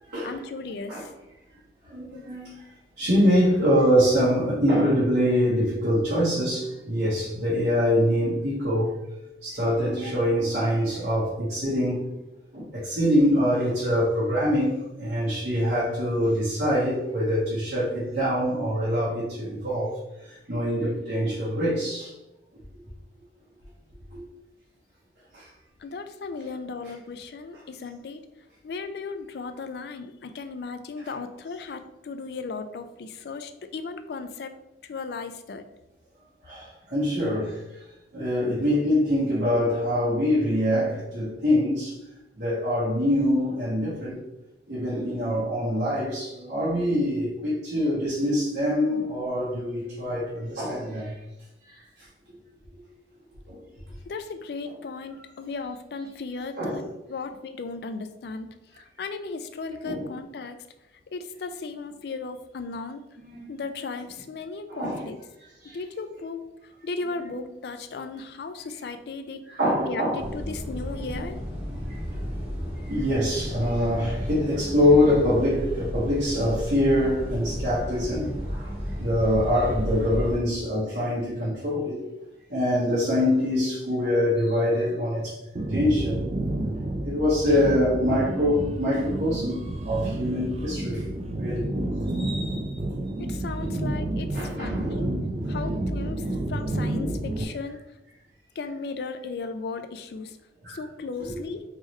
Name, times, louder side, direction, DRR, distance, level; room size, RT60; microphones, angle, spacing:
voice 1, 0.2-1.1 25.8-28.2 28.6-34.5 34.8-35.6 54.1-56.8 57.1-60.6 61.1-63.0 63.5-65.2 65.7-69.4 69.8-71.4 93.2-95.1 95.5-97.8 98.6-100.4 100.7-101.6, left 4 dB, 60° left, 8 dB, 0.4 m, -36 dB
voice 2, 1.9-2.5 3.0-8.9 9.4-12.1 12.5-19.9 20.5-22.1 24.1-24.2 25.3-25.5 36.4-37.6 38.1-41.9 42.4-44.2 44.7-51.2 51.7-51.8 53.5-53.6 56.6-56.8 59.8-60.0 63.2-63.5 64.7-65.0 65.6-65.8 69.5-70.2 70.9-71.3 71.9-72.0 72.9-82.0 82.5-85.3 85.7-86.2 87.0-89.6 89.8-91.0 91.4-91.7 92.1-92.6 93.6-93.7 94.3-95.0 96.9-97.2 100.6-100.8 101.2-101.3, equal, 65° right, -9 dB, 1.2 m, -24 dB
sound 1, 70.2-80.4, equal, 5° right, 1.3 m, -33 dB
sound 2, 85.5-97.4, right 1 dB, 35° right, 0.3 m, -30 dB
3.7 x 3.1 x 3.1 m, 0.94 s
head